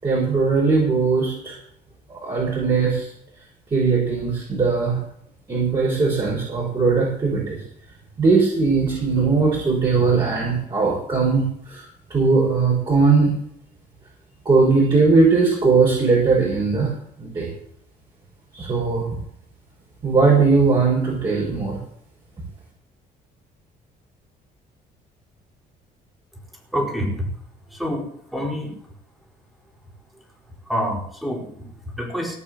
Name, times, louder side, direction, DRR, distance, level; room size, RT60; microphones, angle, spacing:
voice 1, 0.0-1.5 2.1-3.1 3.7-5.0 5.5-7.6 8.2-11.8 12.1-13.3 14.4-16.9 17.2-17.5 18.5-19.1 20.0-21.8, right 4 dB, 25° right, -4 dB, 6.3 m, -19 dB
voice 2, 26.7-27.3 27.7-28.8 30.7-32.4, equal, ahead, 0 dB, 4.9 m, -27 dB
18.0 x 6.2 x 8.2 m, 0.69 s
cardioid pair, 110°, 17 cm